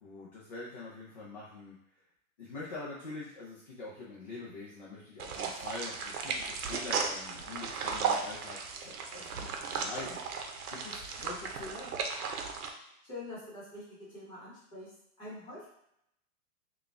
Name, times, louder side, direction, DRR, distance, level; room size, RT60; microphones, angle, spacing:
voice 1, 0.0-1.8 2.4-10.4 10.7-11.9, left 3 dB, 30° left, -6 dB, 0.5 m, -44 dB
sound 1, 5.2-12.7, right 5 dB, 80° right, 0.8 m, -35 dB
voice 2, 12.8-14.9 15.2-15.7, left 2 dB, 10° left, -9 dB, 1.1 m, -45 dB
3.9 x 2.4 x 3.3 m, 0.75 s
hypercardioid pair, 175°, 44 cm